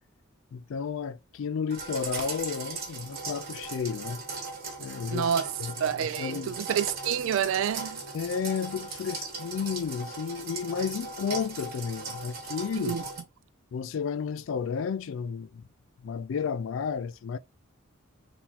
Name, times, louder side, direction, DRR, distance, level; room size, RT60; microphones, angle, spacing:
voice 1, 0.5-4.2 4.8-5.3 5.6-5.7 6.2-6.6 8.1-13.0 13.7-15.6 16.0-17.4, left 6 dB, 65° left, 0.3 m, -32 dB
sound 1, 1.7-13.2, right 4 dB, 50° right, 1.7 m, -38 dB
voice 2, 5.1-5.5 5.8-8.0 12.8-13.0, right 8 dB, 65° right, 0.3 m, -28 dB
4.1 x 2.6 x 4.0 m
head